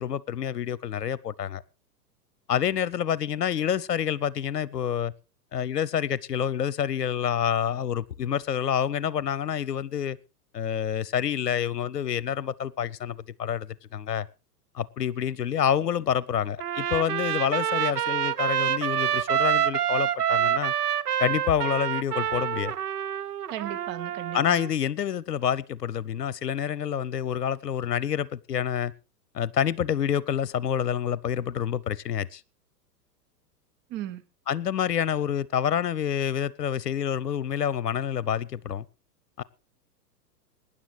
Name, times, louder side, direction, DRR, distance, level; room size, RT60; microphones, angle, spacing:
voice 1, 0.0-1.6 2.5-5.1 5.5-10.2 10.5-14.3 14.7-20.7 21.2-22.8 24.3-28.9 29.3-32.4 34.5-38.8 39.4-39.5, left 9 dB, 70° left, 0.8 m, -28 dB
Trumpet, 16.6-24.7, right 10 dB, 65° right, 0.8 m, -27 dB
voice 2, 23.5-24.6 33.9-34.2, right 12 dB, 20° right, 0.8 m, -36 dB
23.0 x 10.0 x 3.3 m
figure-of-eight pair, 100°, 49 cm